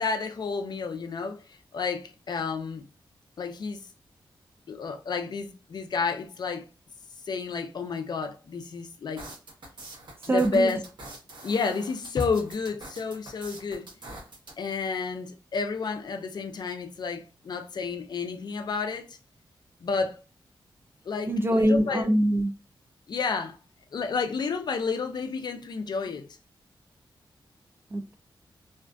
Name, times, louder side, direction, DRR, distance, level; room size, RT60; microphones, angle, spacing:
voice 1, 0.0-1.4 1.7-2.8 3.4-3.9 4.7-6.7 7.2-9.2 10.3-10.8 11.4-13.9 14.6-19.1 19.8-20.2 21.1-22.0 23.1-23.6 23.9-26.3, left 4 dB, 55° left, 0.4 m, -30 dB
sound 1, 9.2-14.5, right 2 dB, 65° right, 1.0 m, -44 dB
voice 2, 10.3-10.7 21.3-22.5 27.9-28.2, right 1 dB, 25° right, 0.3 m, -23 dB
2.5 x 2.4 x 2.2 m
wide cardioid pair, 105°, 8 cm